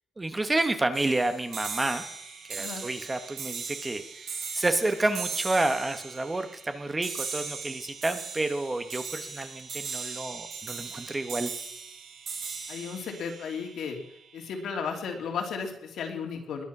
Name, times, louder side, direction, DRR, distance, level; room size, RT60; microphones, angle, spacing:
voice 1, 0.2-2.0 2.5-11.5, right 2 dB, 15° right, 8 dB, 1.1 m, -29 dB
sound 1, 0.9-14.4, right 5 dB, 70° right, 4.3 m, -39 dB
voice 2, 2.6-2.9 12.7-14.0 14.3-16.6, left 6 dB, 75° left, 2 dB, 3.1 m, -34 dB
21.0 x 9.5 x 6.0 m, 0.82 s
cardioid pair, 130°, 0 cm